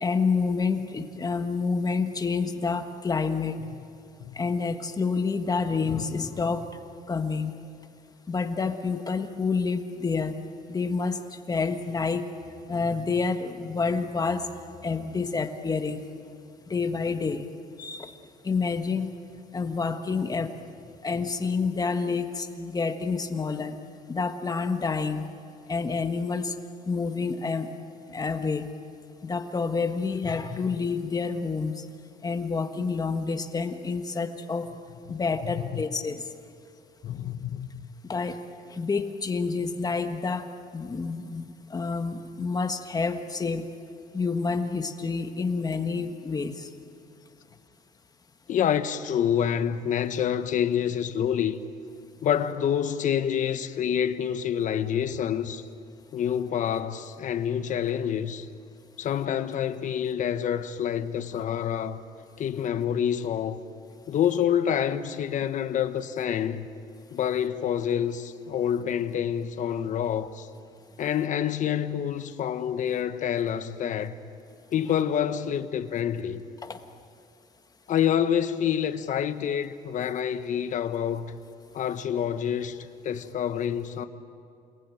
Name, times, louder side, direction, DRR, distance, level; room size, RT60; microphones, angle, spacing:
voice 1, 0.0-3.5 4.3-6.8 7.1-7.5 8.3-10.3 10.7-12.3 12.7-14.5 14.8-16.0 16.7-17.5 17.8-18.1 18.4-19.1 19.5-20.5 21.0-23.8 24.1-25.3 25.7-26.5 26.9-27.7 28.1-28.7 29.2-31.9 32.2-34.7 35.1-36.2 38.0-38.4 38.7-40.5 40.7-43.7 44.1-46.7 76.6-76.8, left 4 dB, 25° left, 1.5 m, -28 dB
voice 2, 37.0-37.9 48.5-51.6 52.2-55.6 56.1-58.5 59.0-62.0 62.4-63.6 64.1-66.7 67.1-70.5 71.0-74.1 74.7-76.4 77.9-81.4 81.7-84.1, left 9 dB, 55° left, 1.2 m, -27 dB
29.0 x 19.5 x 9.1 m
cardioid pair, 125°, 15 cm